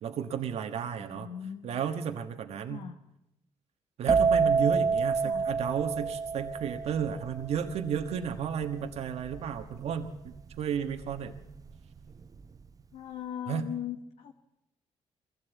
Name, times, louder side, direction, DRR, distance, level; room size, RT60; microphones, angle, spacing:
voice 1, 0.0-1.3 1.6-2.8 4.0-11.3 13.5-13.6, right 8 dB, 70° right, 6 dB, 1.4 m, -33 dB
voice 2, 1.0-1.8 2.7-3.0 5.2-5.5 12.9-14.3, left 9 dB, 75° left, 6 dB, 1.2 m, -39 dB
sound 1, 4.1-11.6 11.9-12.4, right 5 dB, 30° right, 0.7 m, -28 dB
22.5 x 16.0 x 8.2 m, 0.86 s
cardioid pair, 100°, 11 cm